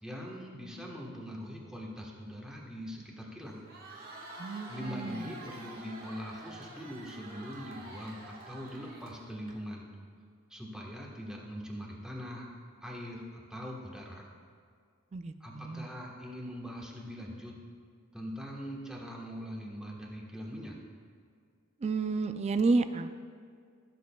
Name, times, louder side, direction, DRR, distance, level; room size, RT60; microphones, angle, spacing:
voice 1, 0.0-3.7 4.7-9.9 10.5-12.5 12.8-14.3 15.4-17.6 18.1-20.8, equal, 5° right, -2 dB, 1.2 m, -42 dB
Crowd, 3.5-9.5, right 2 dB, 45° right, 1.5 m, -48 dB
voice 2, 4.4-5.2 15.1-15.9 21.8-23.2, right 3 dB, 30° right, 10 dB, 0.3 m, -31 dB
15.5 x 7.5 x 2.3 m, 2.1 s
head